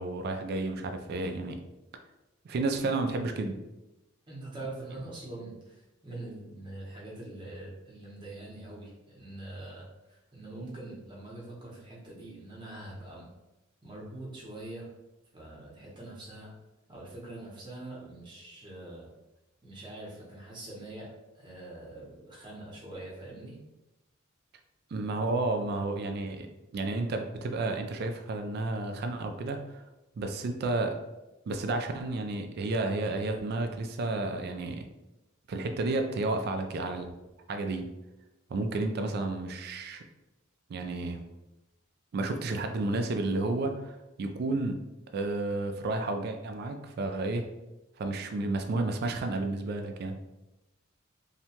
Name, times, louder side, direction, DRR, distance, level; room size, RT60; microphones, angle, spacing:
voice 1, 0.0-1.6 2.4-3.6 24.9-26.5 26.7-29.8 30.2-31.0 31.5-34.8 35.5-37.1 37.5-37.9 38.5-40.0 40.7-41.2 42.1-44.8 45.1-47.5 48.0-50.2, right 2 dB, 50° right, 6 dB, 0.3 m, -31 dB
voice 2, 4.3-13.3 13.8-14.9 15.3-16.5 16.9-19.1 19.6-21.1 21.3-23.6, right 2 dB, 25° right, -5 dB, 0.8 m, -44 dB
2.7 x 2.2 x 2.8 m, 0.99 s
head